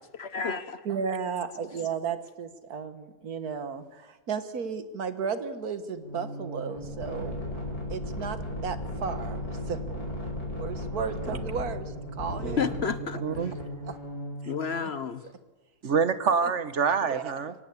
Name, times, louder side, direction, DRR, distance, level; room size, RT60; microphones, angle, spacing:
voice 1, 0.2-0.8 12.6-13.2 14.5-15.2, left 6 dB, 50° left, 13 dB, 1.2 m, -30 dB
voice 2, 0.9-7.4 7.9-10.0 10.6-12.7 13.9-14.0 14.4-14.5 14.8-14.9 17.0-17.3, right 6 dB, 85° right, 11 dB, 1.9 m, -34 dB
sound 1, 6.0-14.6, left 1 dB, 90° left, 5.6 m, -36 dB
voice 3, 13.2-13.5 15.8-17.5, right 6 dB, 55° right, 13 dB, 1.4 m, -26 dB
24.0 x 17.0 x 8.5 m, 1.2 s
omnidirectional pair, 1.6 m